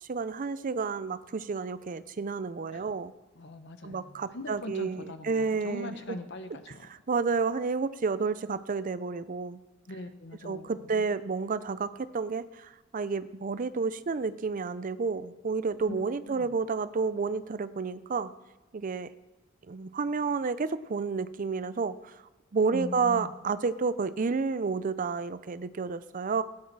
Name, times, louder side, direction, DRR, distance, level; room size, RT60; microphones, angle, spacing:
voice 1, 0.0-3.1 3.8-6.2 6.8-9.6 10.4-18.3 18.7-19.1 19.7-22.1 22.5-26.4, right 4 dB, 40° right, 14 dB, 0.5 m, -30 dB
voice 2, 3.3-6.8 9.9-11.1 15.9-16.5 22.7-23.3, left 1 dB, 60° left, 8 dB, 1.1 m, -41 dB
16.0 x 9.5 x 4.7 m, 1.1 s
head